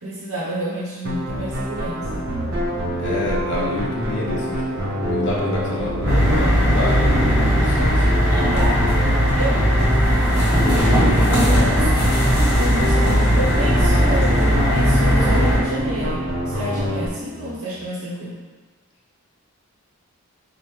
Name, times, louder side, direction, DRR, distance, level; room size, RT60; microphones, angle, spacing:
voice 1, 0.0-2.3 8.3-8.9 9.3-9.7 10.4-11.9 12.5-18.4, right 1 dB, 80° right, -6 dB, 0.8 m, -29 dB
sound 1, 1.0-17.1, equal, 45° right, 0.6 m, -26 dB
voice 2, 3.0-7.1 7.4-8.2 10.6-11.4 13.0-13.4 15.1-15.6 17.2-17.6, left 1 dB, 55° left, -5 dB, 0.6 m, -28 dB
sound 2, 6.0-15.6, equal, 10° right, 1.4 m, -18 dB
4.9 x 2.1 x 2.9 m, 1.4 s
head